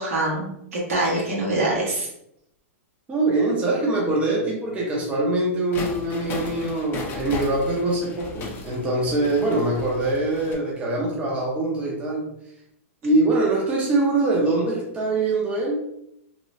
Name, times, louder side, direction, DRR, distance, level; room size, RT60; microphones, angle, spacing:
voice 1, 0.0-2.1, right 2 dB, 80° right, -5 dB, 1.5 m, -24 dB
voice 2, 3.1-12.3 13.0-15.8, right 2 dB, 15° right, -3 dB, 0.6 m, -23 dB
sound 1, 5.7-10.6, left 2 dB, 25° left, 0.5 m, -35 dB
3.0 x 2.1 x 2.6 m, 0.78 s
hypercardioid pair, 135°, 8 cm